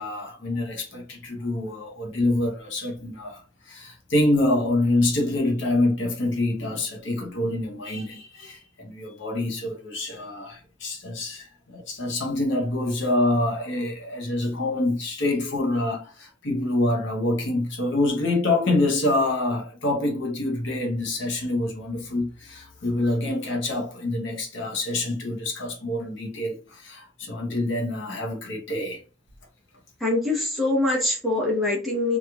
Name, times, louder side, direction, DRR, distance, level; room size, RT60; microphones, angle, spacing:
voice 1, 0.0-29.0, left 2 dB, 60° left, 0.7 m, -26 dB
voice 2, 30.0-32.2, left 2 dB, ahead, 0.8 m, -24 dB
2.9 x 2.3 x 2.3 m
head